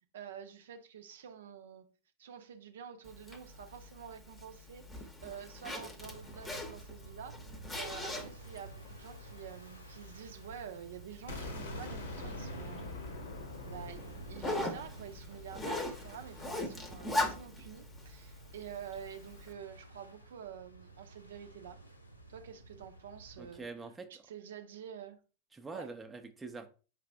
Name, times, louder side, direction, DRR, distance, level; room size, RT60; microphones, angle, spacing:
voice 1, 0.1-1.9 2.2-7.4 7.8-12.9 13.6-21.8 22.3-23.7 24.1-25.2 25.7-25.9, right 8 dB, 60° right, 0.5 m, -48 dB
Zipper (clothing), 3.0-19.5, left 1 dB, 15° left, 0.8 m, -42 dB
sound 1, 6.0-23.6, right 2 dB, 85° left, 0.6 m, -53 dB
sound 2, 11.3-17.1, left 1 dB, 65° left, 0.9 m, -44 dB
voice 2, 23.4-24.2 25.5-26.7, right 4 dB, 10° right, 0.5 m, -45 dB
4.8 x 3.3 x 3.2 m
figure-of-eight pair, 90°, 0 cm